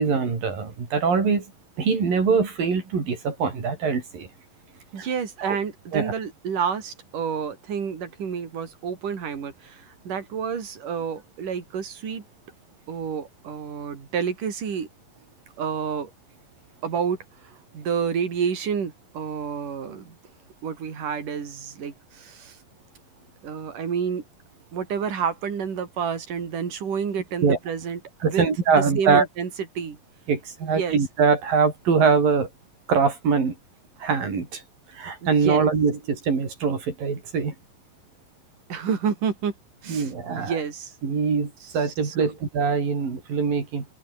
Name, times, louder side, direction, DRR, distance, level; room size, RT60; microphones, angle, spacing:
voice 1, 0.0-1.4 1.8-4.3 5.0-5.1 5.4-5.6 5.9-6.1 27.4-27.6 28.2-29.3 30.3-32.5 32.9-33.6 34.0-34.6 35.0-37.5 39.9-40.6 41.0-43.9, right 5 dB, 85° right, 6.9 m, -23 dB
voice 2, 4.9-12.2 12.9-14.9 15.6-16.1 16.8-20.2 20.6-22.6 23.4-24.2 24.7-29.5 29.8-30.0 30.6-31.0 35.2-35.6 38.7-39.5 39.8-41.0 41.6-42.3, right 7 dB, 70° right, 5.2 m, -29 dB
omnidirectional pair, 3.9 m